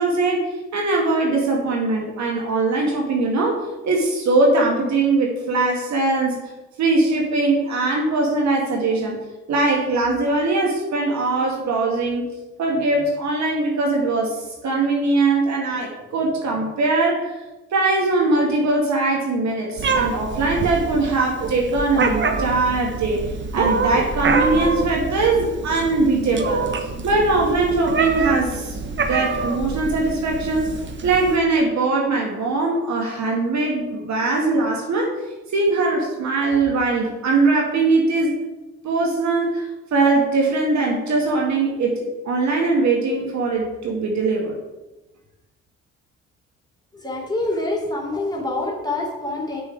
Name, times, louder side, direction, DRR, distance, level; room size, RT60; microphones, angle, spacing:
voice 1, 0.0-6.4 6.8-9.2 9.5-12.3 12.6-17.4 17.7-23.2 23.5-26.6 27.0-30.8 31.0-35.1 35.5-38.3 38.8-44.6, right 3 dB, 50° right, -1 dB, 2.0 m, -21 dB
Meow, 19.8-31.4, right 4 dB, 30° right, 1.1 m, -25 dB
voice 2, 46.9-49.6, left 2 dB, 10° left, -2 dB, 3.0 m, -26 dB
7.5 x 6.9 x 4.7 m, 1.1 s
figure-of-eight pair, 45°, 37 cm